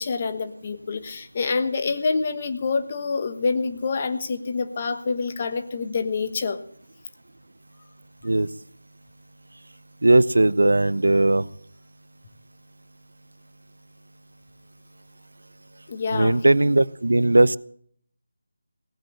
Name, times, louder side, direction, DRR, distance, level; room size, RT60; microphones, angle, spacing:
voice 1, 0.0-6.6 15.9-16.4, left 4 dB, 30° left, 10 dB, 1.2 m, -26 dB
voice 2, 10.0-11.5 16.1-17.6, right 2 dB, 85° right, 19 dB, 0.6 m, -18 dB
17.5 x 7.6 x 8.6 m, 0.62 s
figure-of-eight pair, 170°, 0 cm